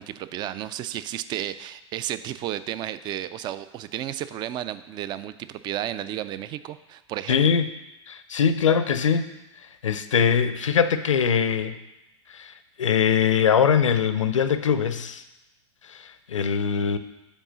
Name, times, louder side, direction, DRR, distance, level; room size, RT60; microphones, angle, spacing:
voice 1, 0.0-7.6, right 12 dB, 30° right, 14 dB, 0.3 m, -33 dB
voice 2, 7.3-7.7 8.1-9.3 9.8-11.8 12.3-12.5 12.8-15.2 15.8-17.0, left 7 dB, 85° left, 11 dB, 0.5 m, -22 dB
5.3 x 4.8 x 6.2 m, 0.97 s
hypercardioid pair, 105°, 16 cm